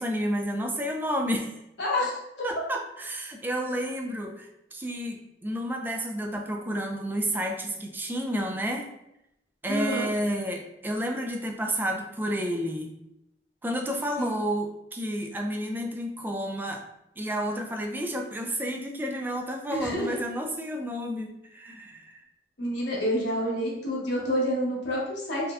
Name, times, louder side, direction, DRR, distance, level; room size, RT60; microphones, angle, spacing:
voice 1, 0.0-1.5 2.4-8.9 9.6-12.9 13.6-16.8 17.2-22.1, equal, 10° right, 2 dB, 0.3 m, -31 dB
voice 2, 1.8-2.1 2.4-2.5 9.7-10.1 14.2-14.3 19.7-20.1 22.6-25.5, equal, 80° left, -4 dB, 1.1 m, -28 dB
4.0 x 2.2 x 2.4 m, 0.83 s
head